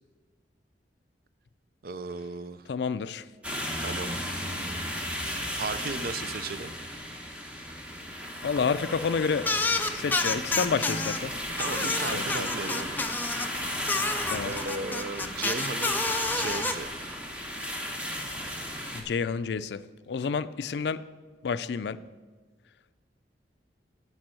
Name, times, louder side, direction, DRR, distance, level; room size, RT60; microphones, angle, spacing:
voice 1, 1.8-2.7 3.8-4.2 5.5-6.7 11.6-13.0 14.4-16.0 16.3-17.0, right 4 dB, 55° right, 13 dB, 0.4 m, -35 dB
voice 2, 2.7-3.2 8.4-9.5 9.9-11.3 12.1-12.5 14.3-14.5 18.9-21.0 21.4-22.0, left 5 dB, 70° left, 15 dB, 0.4 m, -29 dB
sound 1, 3.4-19.0, equal, 5° right, 1.0 m, -34 dB
sound 2, 9.4-11.2 11.6-13.5 13.9-16.7, left 3 dB, 10° left, 0.4 m, -29 dB
8.8 x 5.3 x 7.6 m, 1.3 s
head